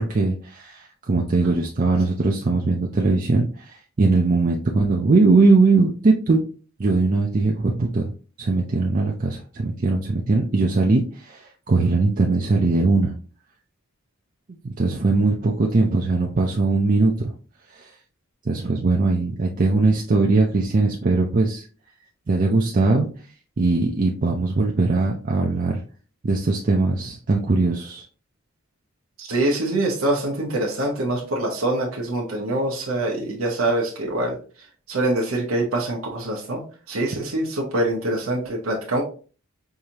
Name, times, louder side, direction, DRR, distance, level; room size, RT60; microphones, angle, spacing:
voice 1, 0.0-6.4 6.8-8.1 8.4-13.1 14.8-17.3 18.5-21.6 22.3-23.1 23.6-25.8 26.2-28.0, right 3 dB, 40° right, 0 dB, 0.5 m, -20 dB
voice 2, 29.2-34.4 34.9-36.6 36.9-39.0, right 1 dB, 75° right, -1 dB, 0.9 m, -24 dB
4.8 x 2.7 x 2.8 m, 0.38 s
head